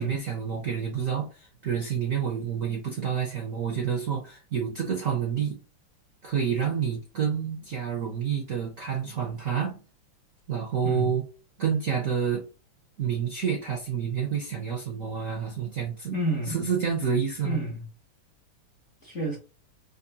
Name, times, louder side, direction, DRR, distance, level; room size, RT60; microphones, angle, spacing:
voice 1, 0.0-5.6 6.2-9.8 10.5-11.2 11.6-12.4 13.0-16.2 16.5-17.6, right 7 dB, 65° right, 0.8 m, -28 dB
voice 2, 16.1-16.6 17.4-17.8 19.0-19.4, right 1 dB, 50° left, 0.9 m, -30 dB
4.2 x 2.6 x 2.7 m
omnidirectional pair, 2.4 m